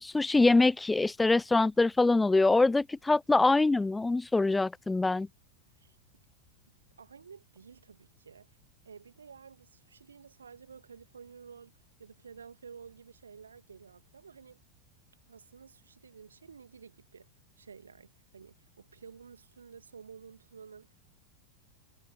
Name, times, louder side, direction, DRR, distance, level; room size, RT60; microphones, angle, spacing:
voice 1, 0.0-5.3, left 3 dB, 10° left, 0.3 m, -24 dB
voice 2, 7.0-8.6 8.8-14.6 15.3-17.3 17.6-20.9, right 6 dB, 70° right, 2.5 m, -52 dB
figure-of-eight pair, 90°, 0 cm